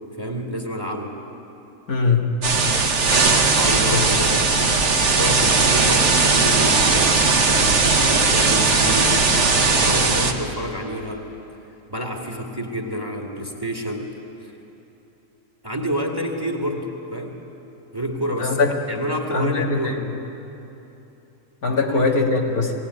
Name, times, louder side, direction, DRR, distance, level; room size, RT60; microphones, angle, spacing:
voice 1, 0.2-1.2 3.3-4.7 5.1-11.3 11.9-14.1 14.4-14.5 15.6-17.4 17.9-18.6 18.9-20.0 21.7-22.1, equal, 15° right, 0 dB, 2.1 m, -29 dB
voice 2, 1.9-2.3 3.9-4.0 18.4-18.7 19.3-20.0 21.6-22.7, left 4 dB, 75° left, 0 dB, 2.4 m, -21 dB
sound 1, 2.4-10.3, right 4 dB, 50° right, 1.6 m, -18 dB
21.0 x 17.0 x 9.5 m, 2.9 s
omnidirectional pair, 1.6 m